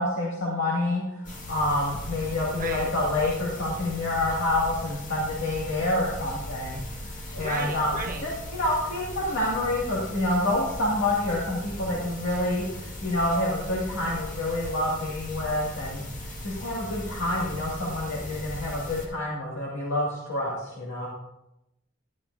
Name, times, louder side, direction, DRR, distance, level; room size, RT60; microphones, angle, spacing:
voice 1, 0.0-6.8 7.3-16.0 16.4-21.1, left 1 dB, 75° left, -6 dB, 2.2 m, -28 dB
sound 1, 1.2-19.1, left 1 dB, 40° left, 2.1 m, -38 dB
voice 2, 2.6-2.9 7.4-8.3, right 3 dB, 45° right, 3 dB, 1.3 m, -34 dB
12.0 x 11.5 x 2.7 m, 0.89 s
head